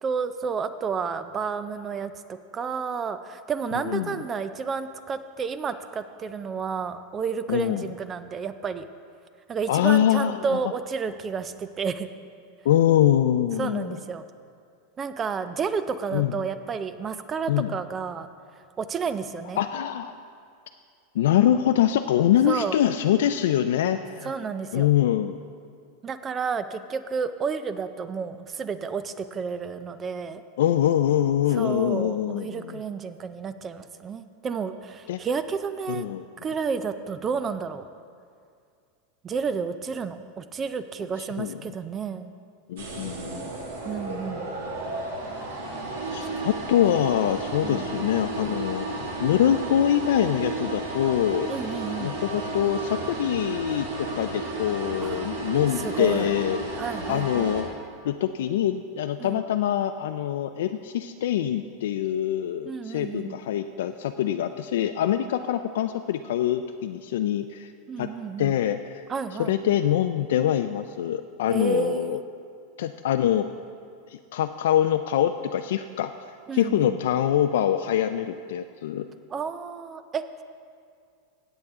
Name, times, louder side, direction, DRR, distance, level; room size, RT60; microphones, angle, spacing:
voice 1, 0.0-8.9 9.5-12.1 13.6-14.3 15.0-18.3 18.8-19.6 22.5-22.8 24.2-24.9 26.0-30.4 31.5-36.1 36.4-37.8 39.2-42.3 43.8-44.5 46.1-46.5 47.6-47.9 51.5-52.1 55.0-55.3 55.8-56.3 56.8-57.5 59.2-59.4 62.6-63.4 67.9-68.5 69.1-69.6 71.5-72.2 76.5-77.0 79.3-80.4, right 6 dB, 20° right, 12 dB, 0.4 m, -31 dB
voice 2, 3.9-4.2 7.5-7.9 9.7-10.6 12.6-13.9 16.1-16.3 17.5-17.7 19.6-20.1 21.2-24.3 24.7-25.4 30.6-32.8 35.1-35.2 35.9-36.2 41.4-41.6 42.7-43.5 46.1-51.5 52.0-56.6 57.1-57.7 58.0-67.7 68.0-68.1 68.4-69.0 69.4-72.2 72.8-73.5 74.1-76.1 76.5-79.0, left 11 dB, 80° left, 7 dB, 0.3 m, -24 dB
sound 1, 42.8-57.6, right 2 dB, 75° right, 2.1 m, -33 dB
16.5 x 8.0 x 3.6 m, 2.3 s
supercardioid pair, 170°, 0 cm